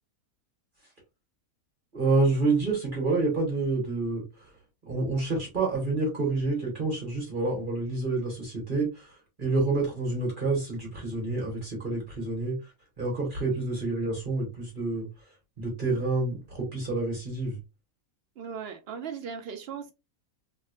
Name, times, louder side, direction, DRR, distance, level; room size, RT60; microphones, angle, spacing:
voice 1, 1.9-4.5 4.9-12.7 13.0-17.6, right 3 dB, 35° right, 1.4 m, -28 dB
voice 2, 18.4-19.9, right 7 dB, 60° right, 0.7 m, -37 dB
3.4 x 3.0 x 2.5 m
omnidirectional pair, 1.5 m